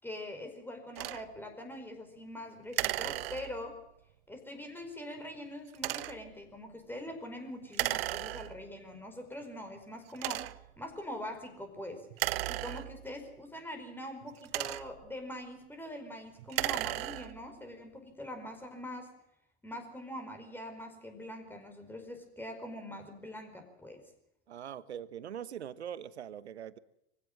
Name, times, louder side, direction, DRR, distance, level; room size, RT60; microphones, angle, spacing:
voice 1, 0.0-3.8 4.3-12.1 12.4-19.1 19.6-24.0, left 1 dB, 5° left, 5 dB, 5.0 m, -43 dB
sound 1, 1.0-1.2 2.7-3.8 5.7-6.3 7.7-8.7 9.4-9.5 10.1-10.8 12.1-13.3 14.2-15.1 16.4-17.5, right 17 dB, 60° right, 0.9 m, -35 dB
voice 2, 24.5-26.8, right 9 dB, 80° right, 17 dB, 1.2 m, -42 dB
24.5 x 16.0 x 7.6 m, 0.80 s
hypercardioid pair, 90°, 33 cm